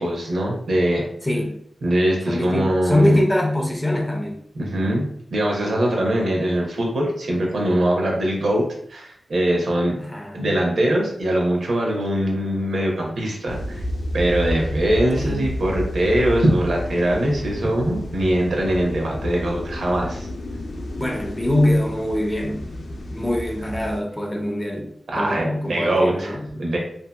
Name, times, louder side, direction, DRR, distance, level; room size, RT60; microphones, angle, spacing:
voice 1, 0.0-1.1 1.8-3.2 4.5-8.6 8.9-10.0 10.3-13.8 14.1-20.3 25.1-26.8, right 1 dB, 70° right, -1 dB, 0.7 m, -22 dB
voice 2, 1.2-1.6 2.3-4.4 10.0-10.5 15.2-15.4 21.0-22.7 23.1-26.5, left 1 dB, 10° left, 1 dB, 0.4 m, -23 dB
sound 1, 13.5-24.0, left 1 dB, 75° left, 0.5 m, -30 dB
2.7 x 2.6 x 2.3 m, 0.67 s
wide cardioid pair, 180°, 0 cm